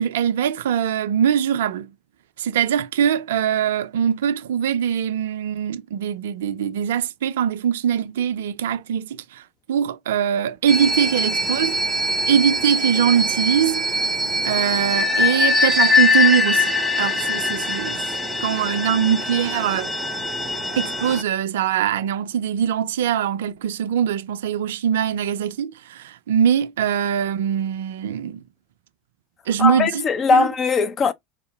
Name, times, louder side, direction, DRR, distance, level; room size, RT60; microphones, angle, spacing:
voice 1, 0.0-1.9 2.4-9.4 9.7-11.8 12.3-13.9 14.4-18.0 18.4-19.9 20.8-28.4 29.5-30.0 30.3-30.5, right 8 dB, 65° right, 0.4 m, -22 dB
sound 1, 10.7-21.2, left 2 dB, ahead, 0.7 m, -22 dB
voice 2, 29.6-31.1, left 5 dB, 30° left, 0.4 m, -19 dB
2.7 x 2.1 x 3.2 m
figure-of-eight pair, 80°, 0 cm